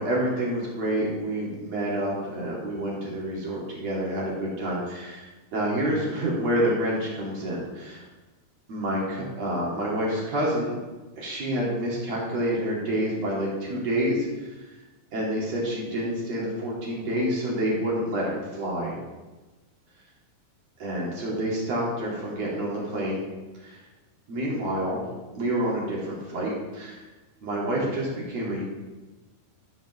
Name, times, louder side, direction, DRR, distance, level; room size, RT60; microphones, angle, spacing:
voice 1, 0.0-8.0 8.7-10.8 11.2-14.6 15.1-18.9 20.8-23.2 23.6-23.8 24.3-25.0 25.3-27.0 27.4-28.6, right 1 dB, 45° right, -4 dB, 2.7 m, -28 dB
14.0 x 5.2 x 6.2 m, 1.2 s
omnidirectional pair, 5.4 m